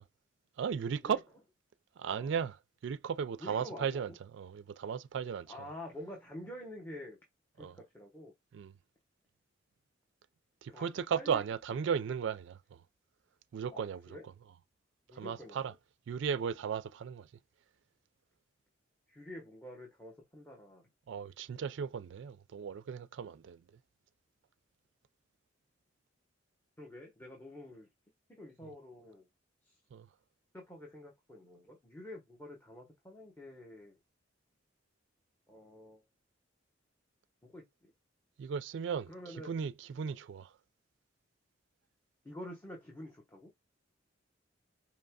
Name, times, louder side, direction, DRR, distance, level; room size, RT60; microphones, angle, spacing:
voice 1, 0.6-1.2 2.0-2.6 2.8-5.5 7.6-7.8 8.5-8.7 10.6-12.8 13.5-14.0 15.1-15.7 16.1-17.3 21.1-23.6 29.9-30.1 38.4-39.1 39.5-40.5, right 7 dB, 65° right, 0.3 m, -36 dB
voice 2, 3.4-4.0 5.5-7.2 7.6-8.3 10.7-10.9 11.2-11.4 13.7-14.2 15.1-15.7 19.1-20.8 26.8-27.9 28.3-29.3 29.6-29.8 30.5-33.9 35.5-36.0 37.4-37.9 39.1-39.5 42.2-43.5, left 1 dB, 10° left, 1.1 m, -48 dB
5.1 x 2.9 x 2.3 m
head